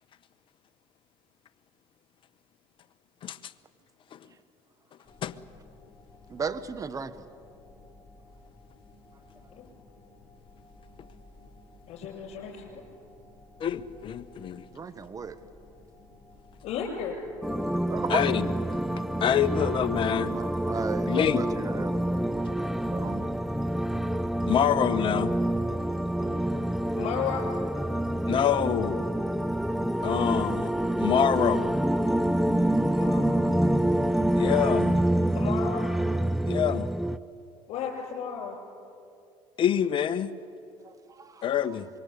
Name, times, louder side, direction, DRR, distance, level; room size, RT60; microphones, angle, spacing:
sound 1, 5.0-21.3, left 2 dB, 20° left, 5.0 m, -54 dB
voice 1, 6.3-7.1 14.7-15.4 17.9-18.2 19.5-19.8 20.2-22.0 22.9-23.3 26.2-26.3 26.6-26.7 40.8-41.4, right 5 dB, 30° right, 1.3 m, -36 dB
voice 2, 11.9-12.8 16.6-17.2 26.9-27.5 32.8-33.6 35.3-35.9 37.7-38.6, left 7 dB, 65° left, 6.2 m, -34 dB
voice 3, 13.6-14.7 18.1-18.5 19.2-20.3 21.1-21.4 24.5-25.3 28.3-29.1 30.0-30.7 31.0-31.7 34.3-35.0 36.5-36.9 39.6-40.3 41.4-41.9, left 9 dB, 45° left, 1.2 m, -26 dB
sound 2, 17.4-37.2, right 1 dB, ahead, 0.6 m, -27 dB
25.0 x 23.0 x 8.4 m
supercardioid pair, 100°, 12 cm